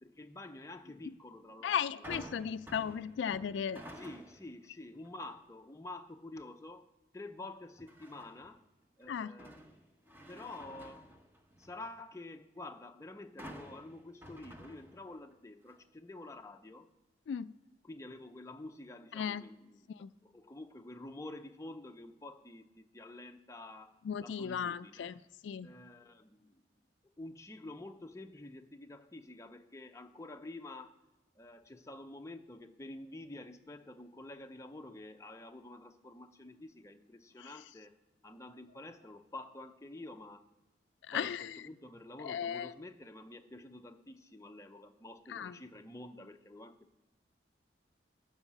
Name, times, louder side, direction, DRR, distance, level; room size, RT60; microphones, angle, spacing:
voice 1, 0.0-2.1 4.0-6.8 7.1-8.6 9.0-9.6 10.3-11.1 11.6-16.9 17.8-19.9 20.2-25.1 25.6-26.6 27.2-31.0 31.4-37.9 38.2-40.4 41.1-47.0, left 2 dB, 15° left, 5 dB, 0.5 m, -49 dB
voice 2, 1.6-3.8 9.1-9.3 17.3-17.5 19.1-19.4 19.9-20.1 24.0-25.7 37.4-37.5 41.1-41.6 42.2-42.7 45.3-45.5, left 8 dB, 80° left, 14 dB, 0.3 m, -36 dB
sound 1, 2.0-4.6 5.0-5.4 7.9-8.5 9.0-11.9 13.4-15.3 15.7-15.8, equal, 10° right, 0.8 m, -51 dB
12.0 x 4.8 x 7.2 m, 1.0 s
head